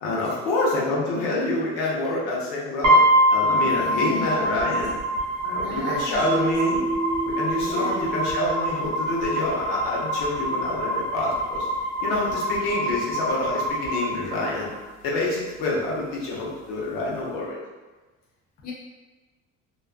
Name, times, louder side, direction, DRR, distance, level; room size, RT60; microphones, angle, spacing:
voice 1, 0.0-3.0 3.3-5.0 5.5-6.8 7.2-11.7 12.0-14.7 15.0-17.6, left 2 dB, 85° left, -4 dB, 0.9 m, -27 dB
sound 1, 2.8-14.8, equal, 60° right, 1.0 m, -25 dB
voice 2, 3.6-4.7 5.4-6.6 7.5-8.2 18.6-18.7, left 3 dB, 30° left, -3 dB, 0.4 m, -37 dB
Mallet percussion, 6.2-9.4, right 3 dB, ahead, 0.8 m, -30 dB
2.4 x 2.3 x 2.4 m, 1.3 s
cardioid pair, 165°, 32 cm